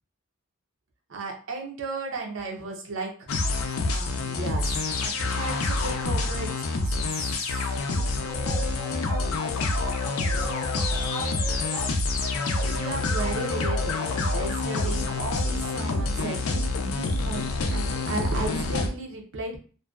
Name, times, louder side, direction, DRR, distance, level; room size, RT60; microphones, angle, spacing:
voice 1, 1.1-3.3 3.9-7.0 12.8-16.4 16.9-19.6, right 3 dB, 65° right, 2 dB, 0.5 m, -35 dB
sound 1, 3.3-18.9, left 3 dB, 80° left, 0.4 m, -27 dB
sound 2, 8.2-9.3 9.6-14.4, right 2 dB, 90° right, 1.2 m, -39 dB
voice 2, 9.0-12.0, left 1 dB, 15° left, -3 dB, 0.7 m, -41 dB
2.5 x 2.1 x 2.3 m, 0.38 s
head